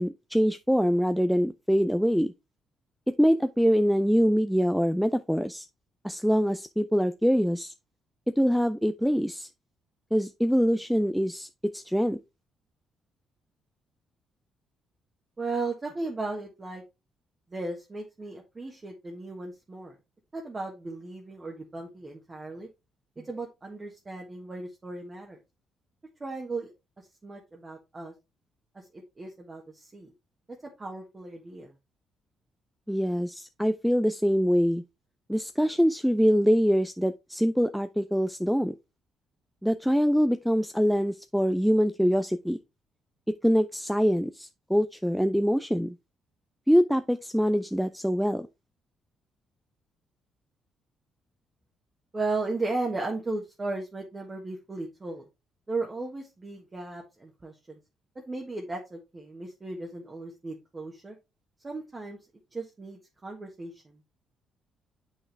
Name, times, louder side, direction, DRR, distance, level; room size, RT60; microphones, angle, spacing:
voice 1, 0.0-2.3 3.1-5.7 6.0-7.7 8.4-9.5 10.1-11.5 11.7-12.2 32.9-34.8 35.3-38.7 39.6-42.6 43.4-45.9 46.7-48.5, equal, ahead, 0.4 m, -24 dB
voice 2, 15.4-16.8 17.5-19.9 20.3-22.7 23.2-25.4 26.2-28.1 28.7-30.1 30.8-31.7 52.1-55.2 55.7-57.8 58.1-61.1 61.6-62.2 62.5-64.0, right 3 dB, 25° right, 1.5 m, -36 dB
7.2 x 5.6 x 3.4 m
cardioid pair, 90°, 0 cm